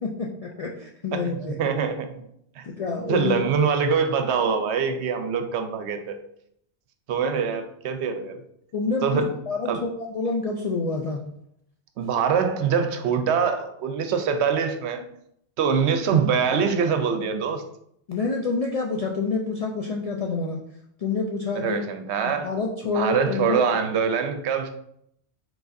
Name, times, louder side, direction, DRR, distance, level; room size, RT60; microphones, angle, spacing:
voice 1, 0.0-1.6 2.6-3.4 8.7-11.3 18.1-20.6 21.0-21.8 22.2-23.6, left 4 dB, 60° left, -1 dB, 0.4 m, -28 dB
voice 2, 1.1-2.2 2.6-2.7 3.1-6.2 7.1-8.4 9.0-9.3 9.6-9.8 12.0-15.1 15.6-17.6 21.5-22.5 22.8-24.7, right 6 dB, 75° right, 7 dB, 0.8 m, -24 dB
4.8 x 3.9 x 2.6 m, 0.72 s
omnidirectional pair, 1.2 m